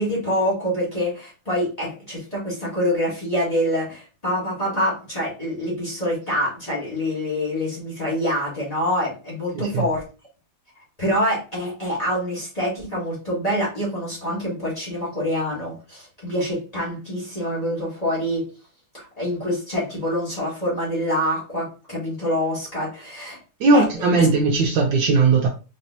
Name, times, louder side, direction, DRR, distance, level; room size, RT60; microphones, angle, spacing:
voice 1, 0.0-10.0 11.0-18.4 18.9-23.4 23.7-23.8, equal, 20° left, 1.6 m, -26 dB
voice 2, 9.5-9.9 23.6-25.5, right 3 dB, 70° right, 1.2 m, -18 dB
4.2 x 3.4 x 2.7 m
omnidirectional pair, 2.3 m